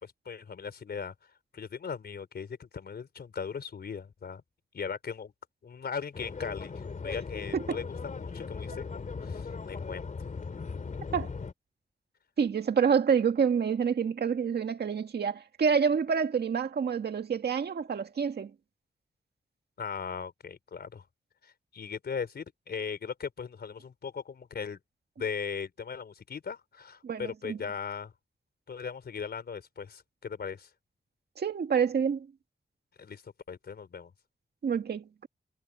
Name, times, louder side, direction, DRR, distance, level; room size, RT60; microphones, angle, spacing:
voice 1, 0.0-1.1 1.5-4.4 4.7-5.3 5.6-6.7 7.0-10.1 19.8-21.0 21.7-24.8 25.2-28.1 28.7-30.7 33.0-34.1, left 6 dB, 75° left, 4.1 m, -38 dB
sound 1, 6.1-11.5, left 4 dB, 50° left, 2.8 m, -38 dB
voice 2, 12.4-18.5 27.0-27.6 31.4-32.3 34.6-35.3, right 6 dB, 75° right, 1.9 m, -27 dB
wide cardioid pair, 145°, 17 cm